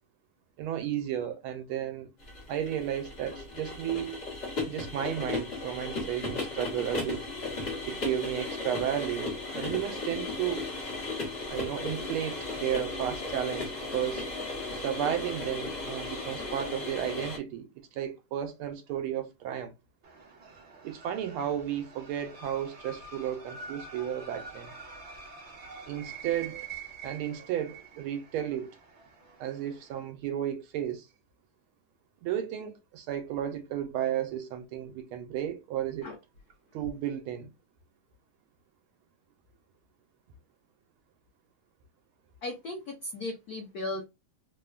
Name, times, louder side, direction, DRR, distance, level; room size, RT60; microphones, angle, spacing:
voice 1, 0.6-2.1 2.5-4.2 4.6-7.2 7.9-10.6 11.5-14.3 14.7-19.7 20.8-24.7 25.9-26.7 27.0-28.8 29.4-31.1 32.2-36.1 36.7-37.5, right 10 dB, 80° right, 1.4 m, -33 dB
sound 1, 2.2-17.4, left 2 dB, 45° left, 0.9 m, -36 dB
sound 2, 20.0-30.0, right 5 dB, 50° right, 0.8 m, -46 dB
voice 2, 42.4-44.0, left 2 dB, 90° left, 0.8 m, -36 dB
3.6 x 2.1 x 2.3 m
omnidirectional pair, 2.4 m